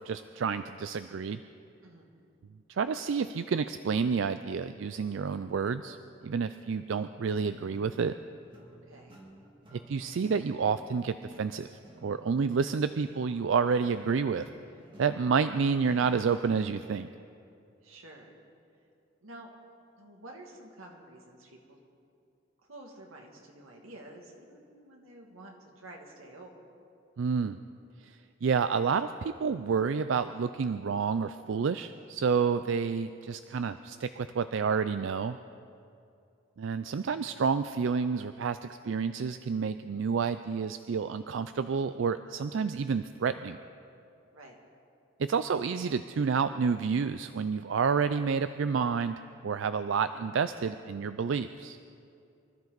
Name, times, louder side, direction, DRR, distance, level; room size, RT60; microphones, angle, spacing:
voice 1, 0.0-1.4 2.7-6.0 6.2-8.1 9.7-11.7 12.0-14.5 15.0-17.1 27.2-27.6 28.0-35.4 36.6-43.6 45.3-49.2 49.4-51.8, right 5 dB, 65° right, 11 dB, 0.4 m, -29 dB
voice 2, 1.8-2.1 8.7-9.2 17.8-18.4 19.2-19.5 20.0-21.8 22.6-26.5 44.3-44.6, right 1 dB, 90° right, 0 dB, 2.3 m, -50 dB
sound 1, 7.3-16.9, right 1 dB, 25° right, 2.2 m, -54 dB
24.5 x 13.5 x 4.0 m, 2.6 s
head